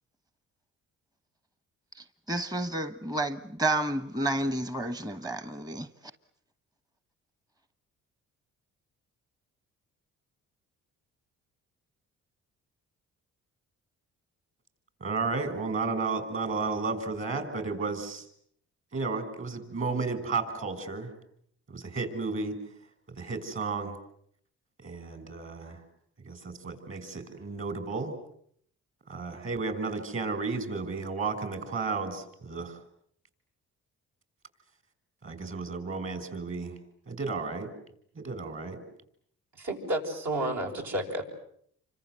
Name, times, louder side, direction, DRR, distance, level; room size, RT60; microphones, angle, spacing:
voice 1, 2.3-5.9, right 1 dB, 15° right, 11 dB, 1.1 m, -30 dB
voice 2, 15.0-18.3 18.9-21.1 21.7-22.6 23.2-24.0 24.8-25.8 26.2-28.1 29.1-32.8 35.2-36.8 37.1-37.7 38.1-38.8, right 4 dB, 45° right, 10 dB, 6.7 m, -33 dB
voice 3, 39.6-41.2, right 1 dB, 65° right, 1 dB, 7.7 m, -31 dB
29.0 x 25.0 x 8.2 m, 0.67 s
cardioid pair, 90°, 30 cm